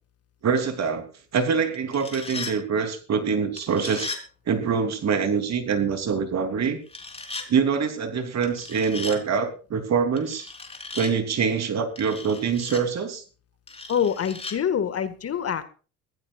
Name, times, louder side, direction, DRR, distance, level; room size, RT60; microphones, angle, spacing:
voice 1, 0.4-1.1 1.3-4.1 4.5-6.8 7.5-10.5 10.9-13.2, right 6 dB, 45° right, 8 dB, 3.3 m, -24 dB
sound 1, 1.7-2.6 3.6-4.2 6.9-7.5 8.4-9.2 10.2-11.1 12.0-12.8 13.7-14.6, left 3 dB, 15° left, 3.7 m, -37 dB
voice 2, 13.9-15.6, left 8 dB, 40° left, 12 dB, 1.9 m, -25 dB
22.0 x 15.0 x 2.5 m, 0.36 s
supercardioid pair, 80°, 37 cm